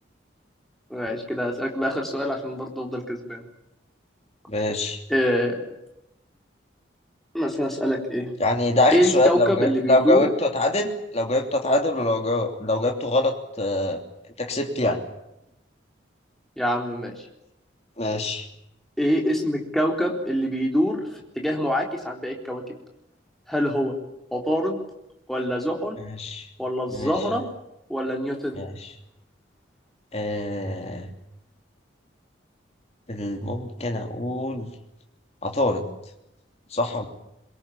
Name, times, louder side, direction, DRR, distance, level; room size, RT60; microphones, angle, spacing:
voice 1, 0.9-3.4 5.1-5.7 7.3-8.3 8.9-10.2 16.6-17.1 19.0-21.0 21.4-22.6 23.5-23.9 24.3-24.8 25.3-26.0 26.6-27.4 27.9-28.6, equal, ahead, 0 dB, 3.9 m, -25 dB
voice 2, 4.5-5.0 8.4-14.0 14.4-15.0 18.0-18.5 26.0-26.5 26.9-27.1 28.6-28.9 30.1-31.1 33.1-34.7 35.4-35.8 36.7-37.1, left 2 dB, 35° left, 3 dB, 3.1 m, -24 dB
23.5 x 21.5 x 8.7 m, 0.87 s
head